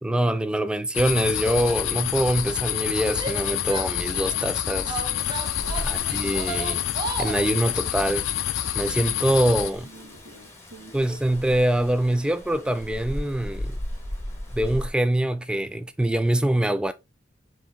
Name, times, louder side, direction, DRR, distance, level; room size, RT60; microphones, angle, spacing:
voice 1, 0.0-5.0 5.8-6.8 7.2-8.3 8.7-9.9 10.9-13.8 14.5-16.9, right 1 dB, 5° right, 0.3 m, -24 dB
sound 1, 0.9-9.7, left 11 dB, 90° left, 0.5 m, -28 dB
Female speech woman speaking / Yell, 3.1-4.4 4.9-7.5, right 3 dB, 20° right, 0.7 m, -34 dB
Rain, 5.2-14.9, left 1 dB, 15° left, 1.0 m, -37 dB
voice 2, 5.5-6.3 9.8-11.0, right 1 dB, 75° right, 1.3 m, -47 dB
4.6 x 2.9 x 3.4 m
head